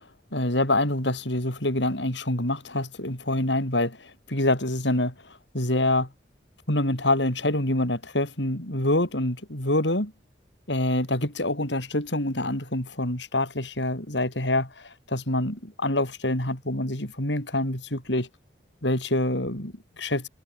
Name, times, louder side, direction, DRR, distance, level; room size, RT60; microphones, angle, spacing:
voice 1, 0.3-6.1 6.7-10.1 10.7-18.3 18.8-20.3, left 1 dB, 80° left, 6.6 m, -26 dB
head